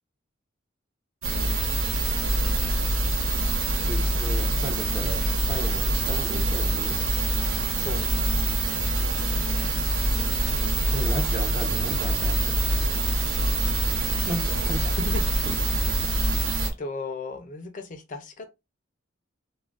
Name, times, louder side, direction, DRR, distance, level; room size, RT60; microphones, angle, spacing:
sound 1, 1.2-16.7, right 1 dB, 80° right, 0.7 m, -25 dB
voice 1, 3.8-7.0 10.9-12.6 14.2-14.9 15.4-15.6, right 1 dB, 25° right, 0.6 m, -35 dB
voice 2, 7.8-8.1 14.2-15.5 16.1-18.5, left 3 dB, 40° left, 0.5 m, -36 dB
2.4 x 2.2 x 3.3 m
head